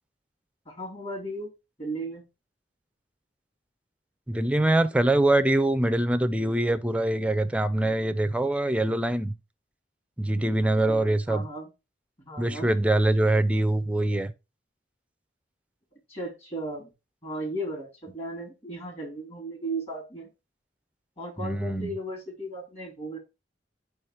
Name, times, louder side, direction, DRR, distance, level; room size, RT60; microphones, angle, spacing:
voice 1, 0.7-1.5 1.8-2.2 10.8-11.7 12.2-12.7 16.1-16.9 17.2-20.3 21.2-23.2, right 1 dB, 35° left, 2.6 m, -36 dB
voice 2, 4.3-9.3 10.2-11.4 12.4-14.3 21.4-21.9, right 1 dB, 5° right, 0.5 m, -24 dB
4.9 x 4.5 x 4.8 m
head